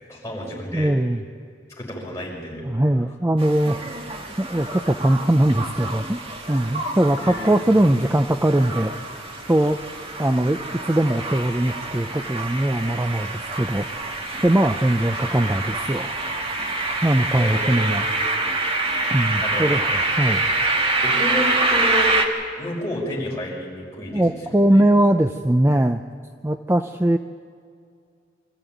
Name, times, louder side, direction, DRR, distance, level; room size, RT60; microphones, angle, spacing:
voice 1, 0.1-0.9 1.8-2.6 7.2-7.5 17.3-17.9 19.4-19.7 21.0-22.1 22.6-24.8, equal, 15° left, -4 dB, 6.0 m, -30 dB
voice 2, 0.7-1.2 2.6-3.8 4.4-6.2 6.5-8.9 9.5-9.8 10.2-13.3 13.6-13.9 14.4-16.5 17.0-18.1 19.1-20.4 24.1-26.0 26.4-27.2, right 1 dB, 15° right, 7 dB, 0.5 m, -20 dB
sound 1, 3.4-22.3, right 2 dB, 30° right, 1.9 m, -26 dB
25.0 x 14.0 x 9.2 m, 2.3 s
head